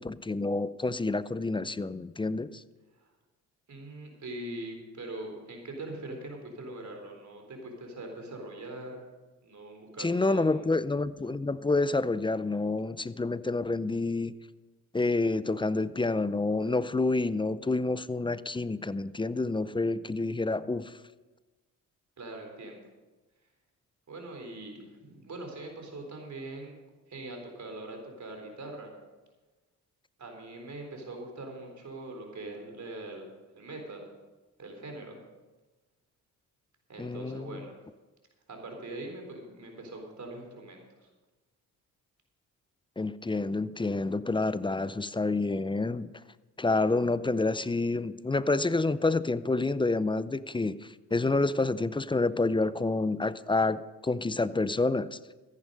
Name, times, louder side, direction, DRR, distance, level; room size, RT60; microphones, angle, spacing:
voice 1, 0.0-2.6 10.0-14.3 14.9-20.9 37.0-37.6 43.0-46.1 46.6-55.2, left 3 dB, 15° left, 16 dB, 0.5 m, -28 dB
voice 2, 3.7-9.0 9.4-10.6 22.2-22.8 24.1-26.8 27.1-28.9 30.2-33.3 33.5-34.1 34.6-35.2 36.9-37.7 38.5-41.1, right 2 dB, 45° right, 3 dB, 4.1 m, -42 dB
14.0 x 10.5 x 5.3 m, 1.2 s
supercardioid pair, 60°, 38 cm